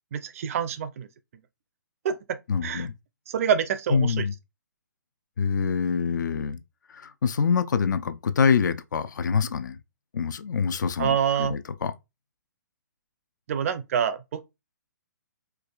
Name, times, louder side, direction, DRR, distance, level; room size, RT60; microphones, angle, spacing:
voice 1, 0.1-1.1 2.0-2.9 3.3-4.2 11.0-11.6 13.5-14.4, right 8 dB, 45° right, 0.5 m, -27 dB
voice 2, 2.5-2.9 3.9-4.3 5.4-6.6 6.9-9.8 10.1-11.9, left 6 dB, 70° left, 0.5 m, -25 dB
4.6 x 2.4 x 2.3 m
hypercardioid pair, 145°, 10 cm